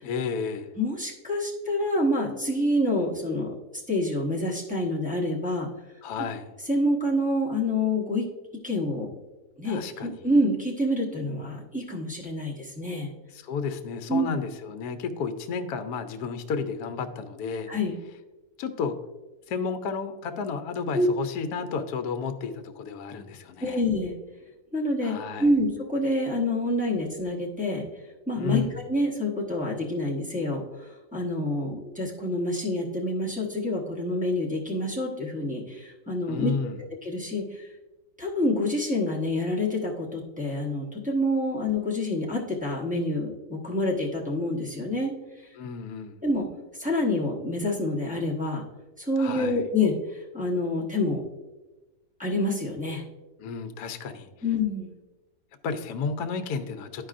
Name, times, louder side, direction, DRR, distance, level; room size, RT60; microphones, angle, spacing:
voice 1, 0.0-0.7 6.0-6.5 9.6-10.1 13.3-17.7 18.6-19.0 19.5-23.8 25.0-25.5 28.3-28.7 36.3-36.8 45.6-46.2 49.2-49.6 53.4-54.3 55.6-57.1, left 5 dB, 75° left, 8 dB, 1.1 m, -32 dB
voice 2, 0.8-5.7 6.7-8.2 8.6-9.1 9.6-13.1 14.1-14.3 17.7-18.0 20.9-21.1 23.6-24.1 24.7-27.8 28.3-36.5 37.0-37.7 38.2-45.1 46.2-46.5 46.8-48.6 49.0-51.2 52.2-53.0 54.4-54.9, left 1 dB, 5° right, -5 dB, 0.7 m, -27 dB
12.0 x 4.7 x 2.5 m, 1.1 s
omnidirectional pair, 1.7 m